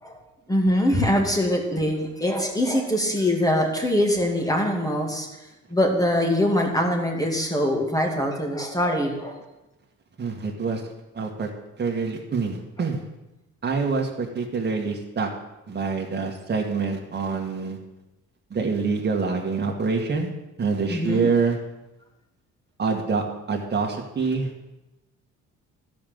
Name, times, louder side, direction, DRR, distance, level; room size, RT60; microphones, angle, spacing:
voice 1, 0.5-5.3 5.7-9.4 20.9-21.3, left 1 dB, 10° left, 1 dB, 2.3 m, -23 dB
voice 2, 10.2-11.5 11.8-13.0 13.6-15.3 15.7-17.8 18.5-20.3 20.6-21.6 22.8-24.5, right 4 dB, 35° right, 1 dB, 1.9 m, -26 dB
12.5 x 5.3 x 7.9 m, 0.98 s
cardioid pair, 90°, 30 cm